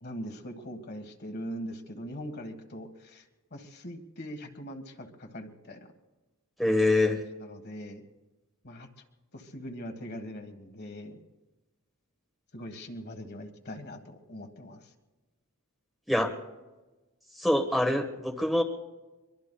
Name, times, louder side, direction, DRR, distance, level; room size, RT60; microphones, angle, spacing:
voice 1, 0.0-3.2 3.5-5.9 7.1-8.0 8.6-8.9 9.3-11.2 12.5-14.9, equal, 45° left, 5 dB, 1.5 m, -41 dB
voice 2, 6.6-7.2 16.1-16.3 17.4-18.6, left 1 dB, ahead, 4 dB, 1.1 m, -25 dB
24.0 x 23.0 x 2.3 m, 1.1 s
head